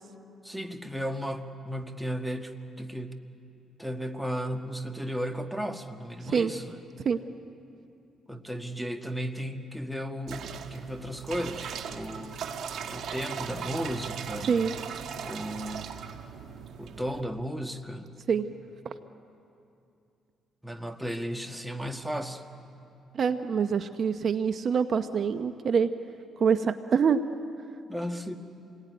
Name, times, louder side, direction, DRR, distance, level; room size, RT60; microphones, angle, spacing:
voice 1, 0.4-3.1 3.8-6.8 8.3-12.4 12.9-14.7 15.2-16.0 16.8-18.1 20.6-22.4 27.9-28.4, equal, 5° right, 6 dB, 1.6 m, -35 dB
sound 1, 10.3-17.2, right 7 dB, 70° right, 1.5 m, -38 dB
voice 2, 23.2-25.9 26.4-27.2, right 6 dB, 55° right, 10 dB, 0.8 m, -25 dB
28.0 x 20.5 x 9.4 m, 2.7 s
cardioid pair, 90°, 0 cm